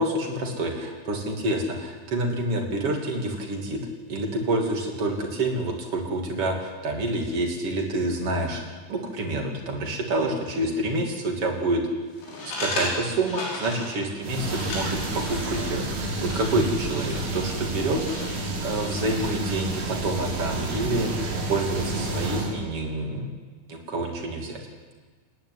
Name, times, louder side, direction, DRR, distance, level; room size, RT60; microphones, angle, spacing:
voice 1, 0.0-3.8 4.1-8.6 8.9-11.8 12.4-18.0 18.4-23.3 23.7-24.6, right 2 dB, 35° right, 2 dB, 2.6 m, -28 dB
sound 1, 12.1-19.4, left 2 dB, 85° left, 8.6 m, -36 dB
sound 2, 14.2-22.5, right 2 dB, 65° right, 5.9 m, -30 dB
29.5 x 11.0 x 9.6 m, 1.4 s
omnidirectional pair, 6.0 m